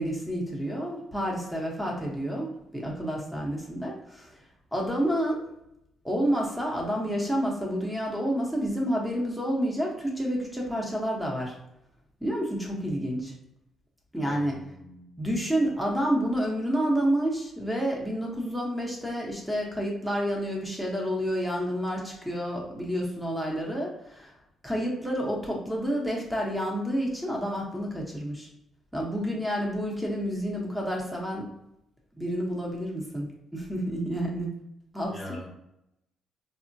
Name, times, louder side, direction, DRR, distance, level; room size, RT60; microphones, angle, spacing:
voice 1, 0.0-4.3 4.7-5.4 6.0-11.5 12.2-13.3 14.1-14.6 15.2-24.3 24.6-28.5 28.9-31.5 32.2-34.5 34.9-35.2, equal, 5° right, -2 dB, 0.9 m, -29 dB
voice 2, 14.2-15.3 35.0-35.5, left 1 dB, 25° left, -4 dB, 0.7 m, -43 dB
3.5 x 2.1 x 2.6 m, 0.82 s
cardioid pair, 90°, 0 cm